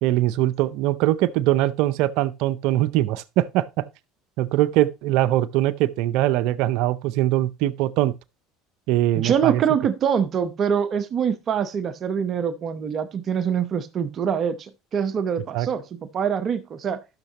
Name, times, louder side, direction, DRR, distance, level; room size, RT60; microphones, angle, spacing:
voice 1, 0.0-3.9 4.4-8.1 8.9-9.6 15.5-15.7, right 14 dB, 70° right, 0.6 m, -22 dB
voice 2, 9.2-17.0, right 7 dB, 45° right, 0.9 m, -24 dB
13.5 x 6.6 x 2.9 m
hypercardioid pair, 85°, 0 cm